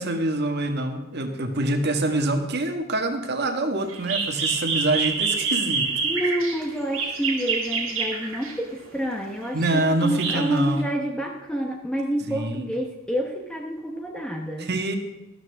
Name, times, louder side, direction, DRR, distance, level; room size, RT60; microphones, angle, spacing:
voice 1, 0.0-5.9 9.5-10.9 12.2-12.7 14.6-15.0, right 2 dB, 50° right, 5 dB, 1.6 m, -25 dB
sound 1, 3.9-8.7 9.4-10.8, right 4 dB, 70° right, 2.4 m, -27 dB
voice 2, 6.0-14.7, equal, 5° left, 0 dB, 1.0 m, -28 dB
13.5 x 13.0 x 3.5 m, 1.0 s
head